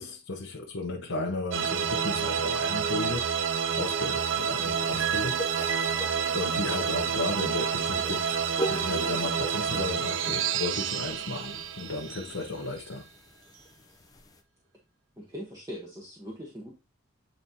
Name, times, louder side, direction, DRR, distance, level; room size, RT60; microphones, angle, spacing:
voice 1, 0.0-3.2 3.8-13.1, left 2 dB, 75° left, 1.0 m, -34 dB
sound 1, 1.5-12.9, right 7 dB, 65° right, 0.5 m, -29 dB
sound 2, 4.1-14.4, equal, 15° left, 0.7 m, -42 dB
voice 2, 15.2-16.7, equal, 15° right, 1.2 m, -41 dB
9.0 x 4.1 x 2.9 m
head